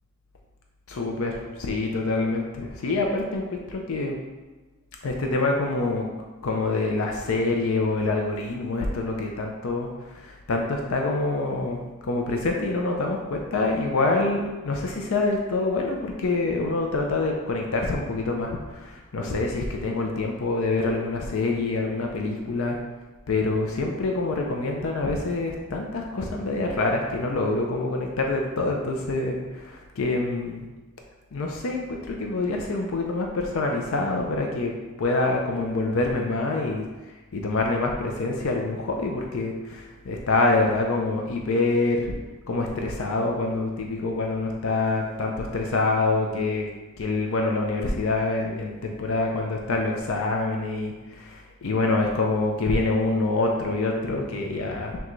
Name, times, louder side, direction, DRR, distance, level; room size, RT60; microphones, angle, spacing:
voice 1, 0.9-4.2 5.0-6.1 6.4-22.8 23.3-30.7 31.3-34.7 35.0-36.8 37.3-42.1 42.5-46.7 47.0-55.0, left 2 dB, 80° left, 1 dB, 0.5 m, -26 dB
6.0 x 2.3 x 3.1 m, 1.2 s
head